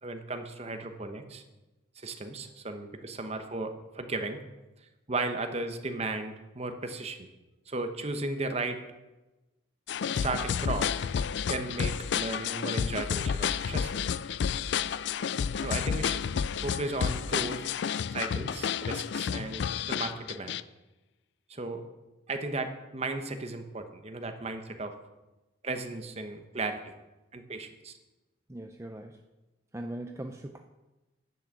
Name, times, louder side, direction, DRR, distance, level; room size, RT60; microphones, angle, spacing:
voice 1, 0.0-1.4 2.0-4.4 5.1-7.3 7.7-8.8 10.2-10.9 11.5-14.0 15.6-16.2 16.6-17.6 18.1-20.6 21.5-21.8 22.3-24.9 25.6-26.9 27.3-27.9, right 2 dB, 35° right, 7 dB, 1.0 m, -35 dB
sound 1, 9.9-20.6, left 7 dB, 65° left, 0.3 m, -31 dB
voice 2, 28.5-29.2 29.7-30.6, right 1 dB, 15° right, 4 dB, 0.5 m, -40 dB
10.5 x 6.3 x 7.5 m, 1.1 s
head